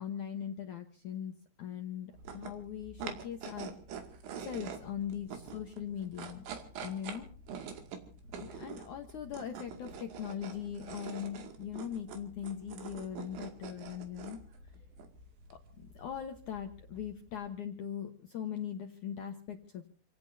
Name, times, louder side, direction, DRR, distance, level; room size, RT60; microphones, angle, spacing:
voice 1, 0.0-3.8 4.4-6.4 6.8-7.3 8.3-14.4 15.5-19.9, left 9 dB, 85° left, 5 dB, 1.7 m, -40 dB
sound 1, 2.1-17.5, right 6 dB, 75° right, 4.5 m, -46 dB
28.5 x 17.5 x 2.8 m, 0.40 s
omnidirectional pair, 5.5 m